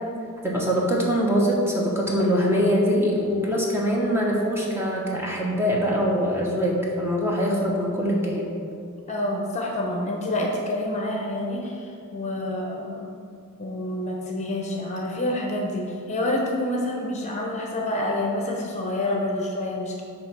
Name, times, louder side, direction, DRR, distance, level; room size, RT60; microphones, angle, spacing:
voice 1, 0.4-8.5, equal, 10° right, -3 dB, 1.1 m, -23 dB
voice 2, 9.1-13.1 13.6-20.0, left 1 dB, 30° left, 0 dB, 0.8 m, -28 dB
9.5 x 3.2 x 6.0 m, 2.4 s
head